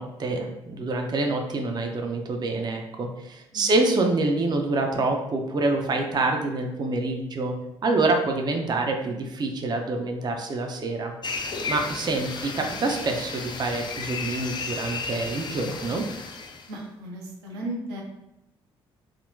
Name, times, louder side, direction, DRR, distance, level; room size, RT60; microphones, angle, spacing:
voice 1, 0.0-7.5 7.8-11.1 11.7-16.0, right 2 dB, 35° right, 3 dB, 0.5 m, -26 dB
voice 2, 3.5-3.8 16.7-18.0, right 1 dB, 80° right, -1 dB, 0.7 m, -35 dB
sound 1, 11.2-16.7, left 4 dB, 35° left, 0.5 m, -34 dB
3.6 x 2.1 x 2.6 m, 0.90 s
hypercardioid pair, 50°, 13 cm